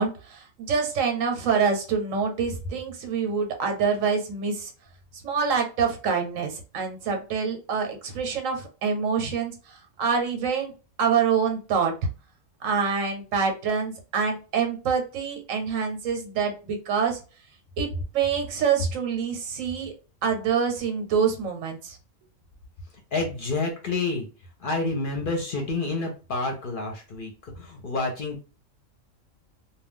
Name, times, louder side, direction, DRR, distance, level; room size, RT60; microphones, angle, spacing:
voice 1, 0.0-4.7 5.2-9.5 10.0-10.7 11.0-11.9 12.6-17.2 17.8-17.9 18.1-19.9 20.2-22.0, right 6 dB, 85° right, 4 dB, 1.1 m, -26 dB
voice 2, 23.1-24.3 24.6-28.4, left 3 dB, 55° left, 2 dB, 0.7 m, -29 dB
2.3 x 2.2 x 3.5 m, 0.34 s
omnidirectional pair, 1.3 m